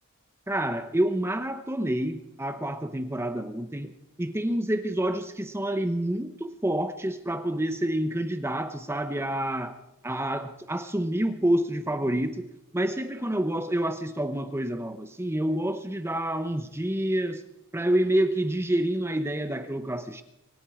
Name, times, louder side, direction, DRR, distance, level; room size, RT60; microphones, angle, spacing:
voice 1, 0.5-9.8 10.0-12.5 12.7-17.4 17.7-20.2, right 1 dB, 10° right, 9 dB, 0.9 m, -28 dB
25.0 x 11.0 x 4.9 m, 0.87 s
head